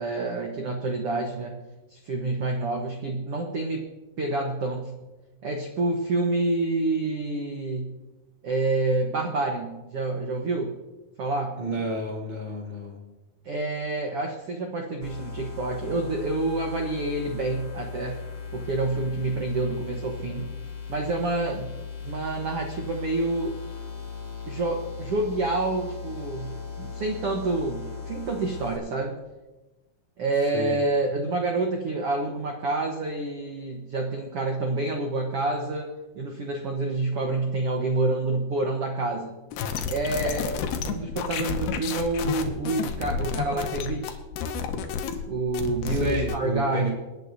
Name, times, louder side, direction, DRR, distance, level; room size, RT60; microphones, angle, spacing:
voice 1, 0.0-1.5 1.9-3.8 4.2-4.9 5.4-7.9 8.4-10.7 11.2-11.5 13.4-18.2 18.5-20.5 20.9-21.7 22.0-23.5 24.4-29.1 30.2-35.9 36.1-39.3 39.9-44.2 45.3-46.9, right 2 dB, 75° right, 1 dB, 1.3 m, -28 dB
voice 2, 11.6-13.0 30.5-30.8 45.9-46.9, equal, 45° left, -3 dB, 0.5 m, -30 dB
sound 1, 15.0-28.8, left 5 dB, 25° left, 3.0 m, -38 dB
sound 2, 39.5-46.4, left 5 dB, 85° left, 2.9 m, -31 dB
28.0 x 9.8 x 2.7 m, 1.1 s
omnidirectional pair, 4.5 m